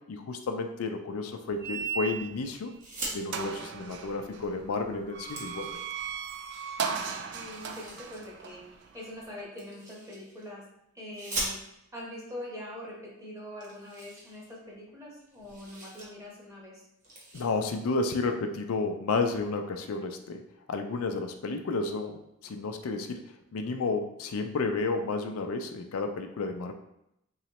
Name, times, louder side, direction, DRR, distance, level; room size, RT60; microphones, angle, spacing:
voice 1, 0.1-2.7 3.1-5.8 17.3-20.4 20.7-22.1 22.4-26.7, left 3 dB, 90° left, 5 dB, 0.5 m, -31 dB
sound 1, 1.6-2.5 2.9-3.0 3.3-9.4, right 7 dB, 55° right, 0.3 m, -37 dB
sound 2, 2.7-3.2 4.5-4.6 4.9-6.3 7.4-8.3 9.6-10.5 11.1-12.0 12.9-13.0 13.2-13.3 13.6-14.9 15.2-16.1 16.4-16.6 17.0-17.4, right 1 dB, 40° right, 0.9 m, -40 dB
voice 2, 6.8-8.6 8.9-10.6 10.9-11.6 11.9-16.8, left 1 dB, 15° right, -5 dB, 1.1 m, -43 dB
3.8 x 3.1 x 2.9 m, 0.80 s
head